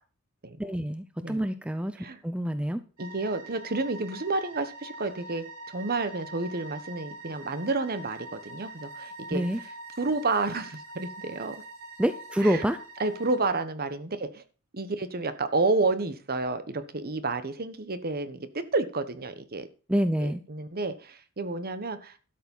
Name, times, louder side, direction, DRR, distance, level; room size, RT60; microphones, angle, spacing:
voice 1, 0.6-2.0 2.2-2.8 9.3-9.6 12.0-12.8 19.9-20.4, equal, 5° right, 10 dB, 0.6 m, -27 dB
voice 2, 3.0-5.4 5.7-9.4 10.0-11.6 12.4-12.6 13.0-14.4 14.7-19.7 20.2-22.2, right 3 dB, 45° right, 12 dB, 1.2 m, -30 dB
sound 1, 3.0-13.4, right 2 dB, 70° right, 3.6 m, -44 dB
12.5 x 7.3 x 5.5 m, 0.37 s
head